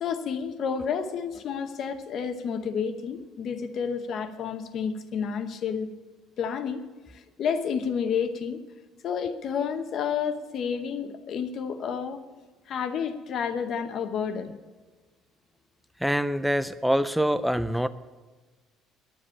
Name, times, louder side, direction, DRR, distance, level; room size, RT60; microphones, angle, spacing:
voice 1, 0.0-5.9 6.4-6.8 7.1-8.6 9.0-12.2 12.7-14.5, left 7 dB, 40° left, 9 dB, 0.8 m, -30 dB
voice 2, 16.0-17.9, equal, ahead, 13 dB, 0.3 m, -25 dB
11.0 x 7.6 x 9.8 m, 1.3 s
cardioid pair, 175°, 0 cm